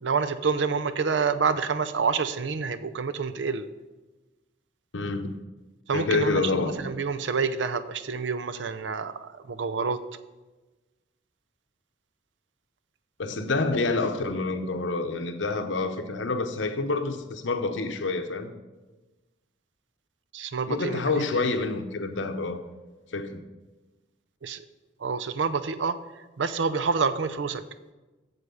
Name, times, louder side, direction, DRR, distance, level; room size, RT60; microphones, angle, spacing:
voice 1, 0.0-3.7 5.9-10.0 20.3-21.4 24.4-24.6 25.0-26.0 26.4-27.6, right 5 dB, 75° right, 11 dB, 0.5 m, -28 dB
voice 2, 4.9-5.3 5.9-6.7 13.2-18.5 20.7-22.6 23.1-23.4, left 3 dB, 85° left, 8 dB, 0.8 m, -27 dB
8.0 x 7.4 x 5.5 m, 1.2 s
head